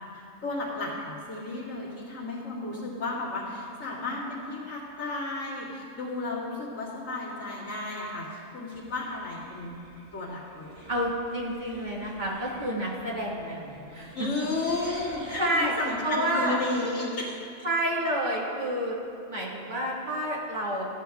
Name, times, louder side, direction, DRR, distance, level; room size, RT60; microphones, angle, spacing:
voice 1, 0.1-9.8 10.1-10.9 14.1-17.4, left 2 dB, 65° left, -8 dB, 2.3 m, -33 dB
sound 1, 8.7-15.5, right 1 dB, 70° right, 2.0 m, -50 dB
voice 2, 10.9-14.5 14.8-14.9 15.4-15.7 16.0-16.6 17.6-19.0 19.3-20.8, right 1 dB, 35° right, -5 dB, 1.8 m, -29 dB
13.5 x 9.5 x 2.3 m, 2.7 s
omnidirectional pair, 1.5 m